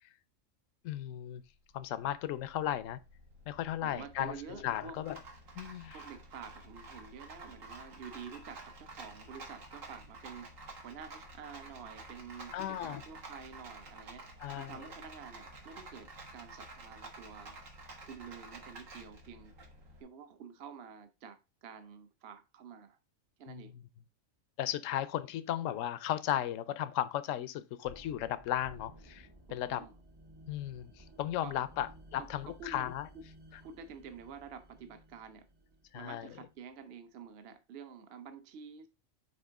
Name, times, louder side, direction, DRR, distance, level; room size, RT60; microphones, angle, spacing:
voice 1, 0.8-1.4 1.7-3.0 3.5-5.2 5.6-6.0 12.5-13.0 14.4-14.8 23.5-23.8 24.6-29.8 30.5-33.1 35.9-36.3, left 12 dB, 80° left, 1.0 m, -36 dB
Rattle, 1.4-20.0, right 2 dB, 80° right, 1.9 m, -51 dB
voice 2, 3.8-5.0 5.9-14.3 14.5-17.6 18.0-19.5 20.0-23.0 23.4-23.7 29.5-30.0 31.4-31.6 32.2-32.9 33.1-33.2 33.6-35.5 35.9-38.9, right 6 dB, 55° right, 0.9 m, -49 dB
sound 1, 27.8-36.7, right 1 dB, 25° right, 0.6 m, -56 dB
6.5 x 4.6 x 3.5 m
omnidirectional pair, 1.4 m